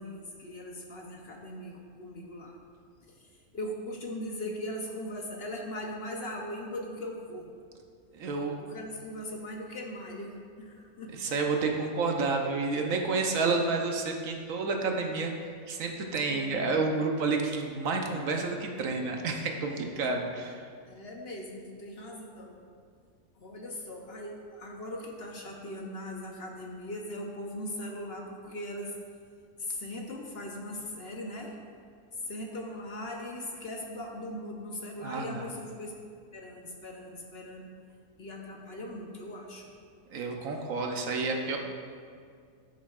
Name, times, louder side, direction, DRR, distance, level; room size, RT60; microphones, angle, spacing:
voice 1, 0.0-2.6 3.1-7.5 8.6-11.2 16.3-16.7 19.9-20.1 20.9-22.7 23.4-29.0 29.6-31.6 32.2-35.9 36.3-37.7 38.2-39.7, left 1 dB, 50° left, 0 dB, 0.9 m, -40 dB
voice 2, 8.1-8.6 11.1-15.3 15.7-20.7 35.0-35.4 40.1-41.6, right 3 dB, 70° right, 2 dB, 1.2 m, -30 dB
13.0 x 6.2 x 2.4 m, 2.2 s
omnidirectional pair, 1.5 m